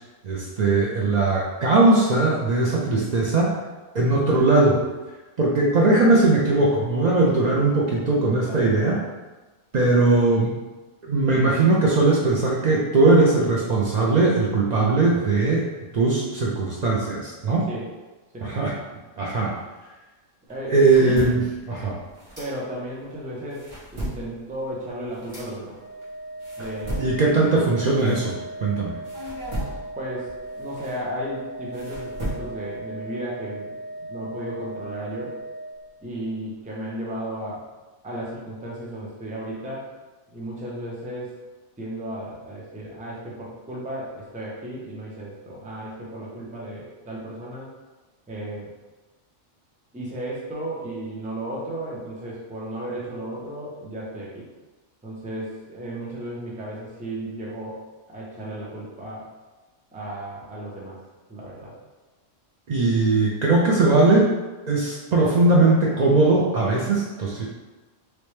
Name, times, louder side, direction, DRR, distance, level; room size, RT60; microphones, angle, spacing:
voice 1, 0.2-3.6 3.9-4.8 5.4-9.0 9.7-10.5 11.1-15.7 15.9-17.7 18.4-18.7 19.2-19.5 20.7-21.4 21.7-22.0 27.0-28.3 28.6-29.0 62.7-64.3 64.7-67.5, right 2 dB, 75° right, -4 dB, 0.4 m, -19 dB
voice 2, 8.0-9.0 17.7-17.9 18.3-18.6 20.5-21.4 22.4-25.8 26.6-27.0 30.0-30.3 30.6-33.7 34.0-35.4 36.0-37.6 38.0-39.9 40.3-41.4 41.8-47.7 48.3-48.7 49.9-54.5 55.0-57.8 58.1-59.3 59.9-61.0 61.3-61.8, right 1 dB, 10° right, -5 dB, 0.5 m, -34 dB
sound 1, 20.5-23.0 23.4-28.7 29.0-32.8, right 1 dB, 25° right, 1.1 m, -36 dB
Organ, 25.6-36.3, right 1 dB, 50° right, 1.0 m, -38 dB
3.1 x 3.0 x 3.1 m, 1.2 s
omnidirectional pair, 1.3 m